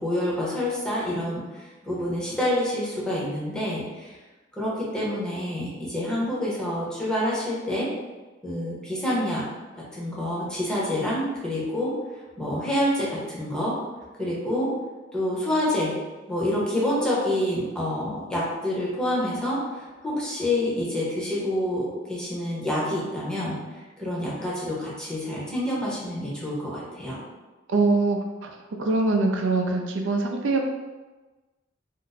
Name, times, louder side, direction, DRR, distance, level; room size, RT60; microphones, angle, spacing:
voice 1, 0.0-4.1 4.6-7.9 8.4-9.5 9.9-11.9 12.4-13.7 14.2-14.7 15.1-15.9 16.3-27.2, left 1 dB, 5° left, -7 dB, 0.8 m, -27 dB
voice 2, 27.7-28.5 28.8-30.7, right 3 dB, 80° right, 3 dB, 0.5 m, -23 dB
2.6 x 2.2 x 3.9 m, 1.2 s
head